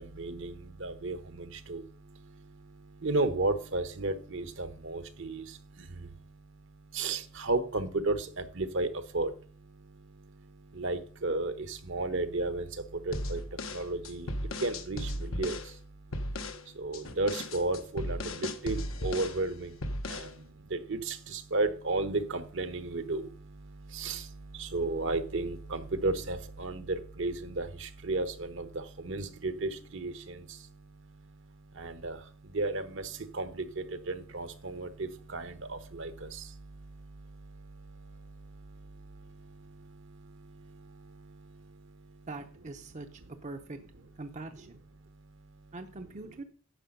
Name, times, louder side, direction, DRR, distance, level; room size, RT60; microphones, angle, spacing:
voice 1, 0.0-42.3 45.0-45.7, right 2 dB, 65° right, 10 dB, 1.0 m, -35 dB
sound 1, 13.1-15.7 16.1-16.6 16.9-19.4 19.8-20.3, left 1 dB, 75° left, 1.1 m, -36 dB
voice 2, 42.3-43.8 44.2-44.8 45.7-46.4, right 2 dB, 35° right, 6 dB, 0.7 m, -43 dB
10.0 x 7.0 x 5.3 m, 0.41 s
head